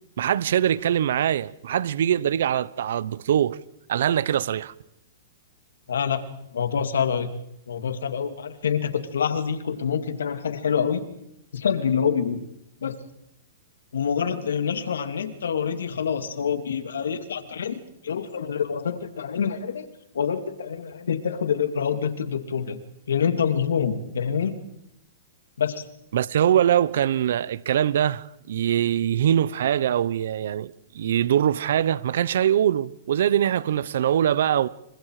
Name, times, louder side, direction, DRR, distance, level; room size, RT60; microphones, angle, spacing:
voice 1, 0.2-3.6 3.9-4.7 26.1-34.7, right 10 dB, 70° right, 0.9 m, -23 dB
voice 2, 5.9-6.2 6.5-7.3 7.7-11.0 11.5-12.4 12.8-13.0 13.9-17.8 18.0-19.9 20.1-22.8 23.1-24.6 25.6-25.8, left 7 dB, 90° left, 2.7 m, -26 dB
29.5 x 24.5 x 5.0 m
hypercardioid pair, 145°, 0 cm